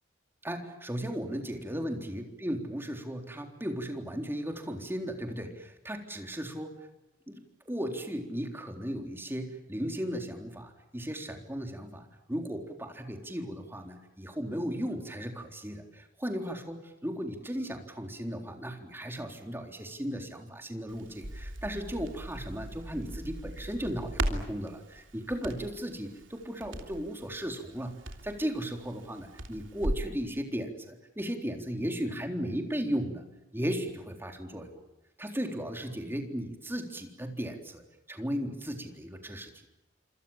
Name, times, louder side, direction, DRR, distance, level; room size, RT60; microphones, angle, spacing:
voice 1, 0.4-6.8 7.3-33.2 33.5-34.8 35.2-37.8 38.1-39.7, equal, 10° right, 4 dB, 3.8 m, -36 dB
Crackle, 20.9-30.1, right 1 dB, 75° right, 3.1 m, -38 dB
27.0 x 27.0 x 7.4 m, 0.94 s
head